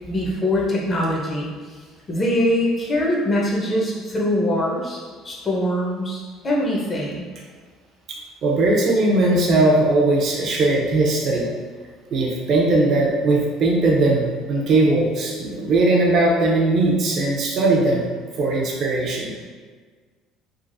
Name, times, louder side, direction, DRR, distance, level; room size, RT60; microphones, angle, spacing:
voice 1, 0.1-1.5 2.1-5.0 5.2-7.2, left 1 dB, 30° left, -3 dB, 1.0 m, -22 dB
voice 2, 8.4-11.5 12.1-18.0 18.4-19.3, right 2 dB, 55° right, -2 dB, 0.8 m, -19 dB
3.7 x 2.5 x 2.6 m, 1.5 s
supercardioid pair, 85°, 0 cm